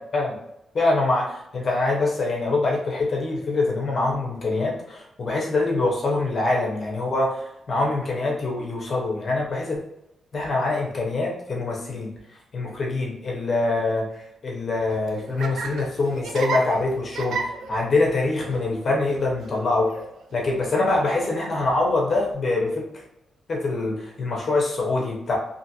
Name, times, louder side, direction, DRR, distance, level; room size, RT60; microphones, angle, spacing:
voice 1, 0.7-9.8 10.3-12.1 12.5-19.9 20.3-23.0 23.5-25.4, left 2 dB, 40° left, -1 dB, 0.6 m, -24 dB
Laughter, 14.8-22.3, right 4 dB, 80° right, 0.3 m, -35 dB
2.5 x 2.4 x 2.7 m, 0.84 s
wide cardioid pair, 145°, 0 cm